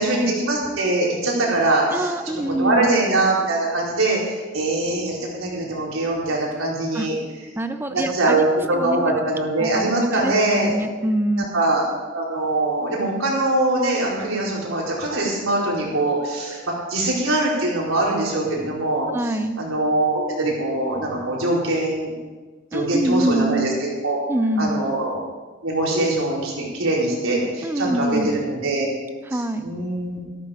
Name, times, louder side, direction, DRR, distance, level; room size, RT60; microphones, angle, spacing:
voice 1, 0.0-7.1 7.9-10.7 11.4-11.9 12.1-16.6 16.9-19.1 19.6-22.1 22.7-23.7 24.0-24.2 24.6-25.2 25.6-28.8 29.6-30.2, right 2 dB, 90° right, -4 dB, 4.4 m, -22 dB
voice 2, 1.9-3.0 6.9-7.1 7.6-8.4 8.7-9.2 9.6-11.5 19.1-19.6 22.7-23.7 24.3-24.8 27.6-28.4 29.3-29.6, right 1 dB, 10° right, 8 dB, 0.6 m, -25 dB
13.5 x 12.0 x 5.1 m, 1.3 s
head